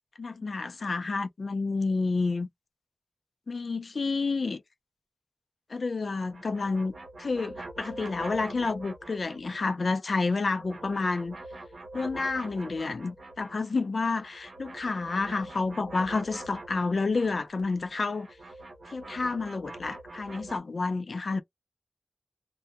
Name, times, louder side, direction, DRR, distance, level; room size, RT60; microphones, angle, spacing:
voice 1, 0.2-2.5 3.5-4.6 5.7-6.9 7.2-11.4 11.9-18.3 18.9-21.4, left 3 dB, 80° left, 0.4 m, -29 dB
sound 1, 6.2-9.8 10.1-13.7 14.0-20.6, right 2 dB, 90° right, 0.6 m, -44 dB
2.1 x 2.1 x 2.8 m
wide cardioid pair, 45°, 0 cm